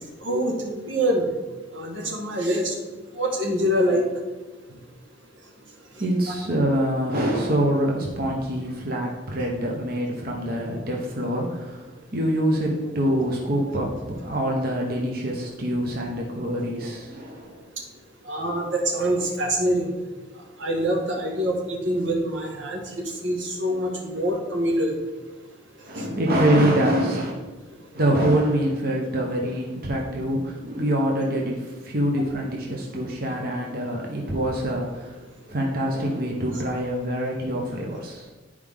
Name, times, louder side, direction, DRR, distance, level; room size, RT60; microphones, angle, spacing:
voice 1, 0.2-1.2 1.7-2.7 3.1-4.1 18.3-19.9 20.6-22.8 23.2-24.9 26.0-26.1, equal, 90° right, 0 dB, 1.6 m, -25 dB
voice 2, 6.0-17.6 25.9-27.3 27.9-35.2 35.5-38.3, right 1 dB, 50° right, -1 dB, 1.1 m, -25 dB
10.5 x 4.8 x 3.7 m, 1.2 s
head